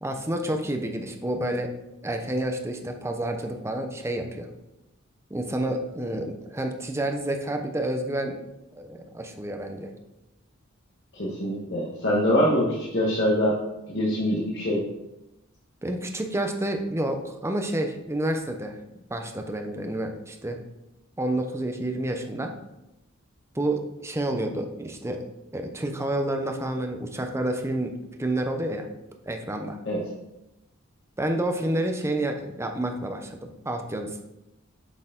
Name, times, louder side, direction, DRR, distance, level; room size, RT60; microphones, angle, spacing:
voice 1, 0.0-1.7 2.0-4.5 5.3-8.4 8.8-9.9 15.8-18.8 19.1-20.6 21.2-22.5 23.5-25.2 25.5-28.9 29.3-29.8 31.2-34.2, right 1 dB, 15° right, 5 dB, 0.7 m, -29 dB
voice 2, 11.1-13.6 13.9-14.8 29.9-30.0, equal, 60° left, -6 dB, 1.3 m, -24 dB
8.0 x 4.6 x 3.8 m, 0.92 s
head